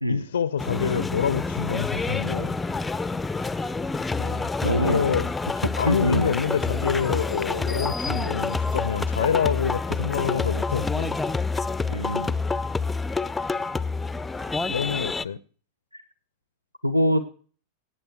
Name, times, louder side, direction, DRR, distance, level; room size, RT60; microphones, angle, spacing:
voice 1, 0.1-2.6 4.2-5.3 5.8-11.2 14.7-15.4, left 7 dB, 70° left, 0.5 m, -27 dB
sound 1, 0.6-15.2, left 3 dB, 10° left, 0.5 m, -28 dB
voice 2, 4.6-5.1 5.8-6.4 11.9-12.4 15.9-16.0 16.8-17.2, equal, 90° right, 0.7 m, -24 dB
17.5 x 9.0 x 4.6 m
figure-of-eight pair, 90°, 0 cm